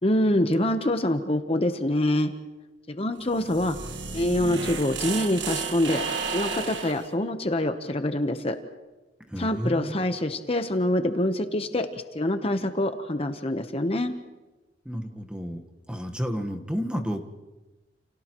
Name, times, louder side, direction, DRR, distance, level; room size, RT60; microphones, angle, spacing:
voice 1, 0.0-2.3 2.9-3.8 4.1-8.6 9.4-14.1, left 1 dB, 35° left, 7 dB, 0.9 m, -25 dB
sound 1, 3.2-7.1, right 5 dB, 90° right, 1.6 m, -32 dB
voice 2, 9.3-10.0 14.8-15.6 15.9-17.2, equal, 5° right, 4 dB, 1.3 m, -31 dB
30.0 x 29.5 x 3.0 m, 1.1 s
head